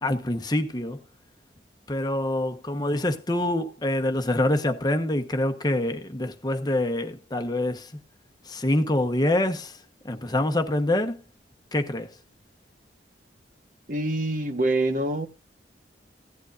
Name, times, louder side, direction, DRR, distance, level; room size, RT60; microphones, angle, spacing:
voice 1, 0.0-1.0 1.9-7.9 8.5-9.7 10.0-11.2 11.7-12.1, left 1 dB, 20° left, 1.1 m, -25 dB
voice 2, 13.9-15.3, right 2 dB, 45° right, 1.3 m, -25 dB
16.5 x 11.0 x 2.5 m
head